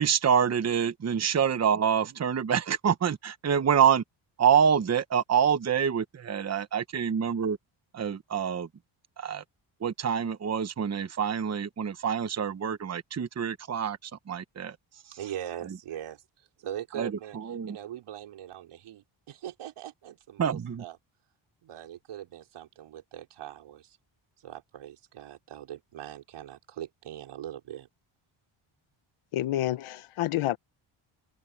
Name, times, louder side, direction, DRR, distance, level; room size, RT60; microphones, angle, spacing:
voice 1, 0.0-4.0 4.4-7.6 7.9-8.7 9.2-9.4 9.8-14.8 15.1-15.2 17.0-17.8 20.4-20.8, right 8 dB, 30° right, 1.1 m, -26 dB
voice 2, 15.1-21.0 21.6-24.0 24.4-27.9, right 11 dB, 85° right, 4.9 m, -41 dB
voice 3, 29.3-30.6, left 14 dB, 85° left, 1.1 m, -28 dB
cardioid pair, 125°, 48 cm